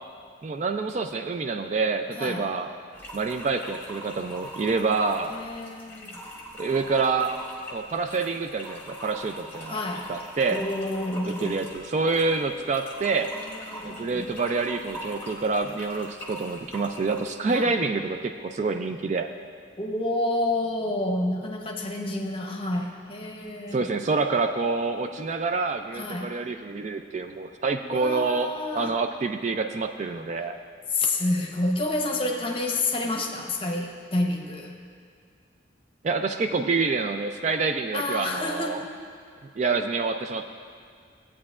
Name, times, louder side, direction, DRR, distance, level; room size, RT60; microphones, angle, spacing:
voice 1, 0.4-2.7 3.1-5.4 6.6-7.3 7.7-9.8 10.1-10.6 11.3-13.3 13.8-19.3 23.7-30.6 36.0-38.8 39.6-40.4, right 4 dB, 35° right, 6 dB, 0.3 m, -27 dB
sound 1, 2.9-17.4, equal, 10° left, 1.1 m, -42 dB
voice 2, 5.3-6.2 9.6-10.1 10.5-11.6 13.2-14.3 17.5-17.7 19.8-23.9 25.9-26.3 27.9-28.9 30.9-34.7 37.9-38.8, left 2 dB, 30° left, 1 dB, 0.8 m, -29 dB
16.0 x 8.5 x 2.4 m, 2.2 s
head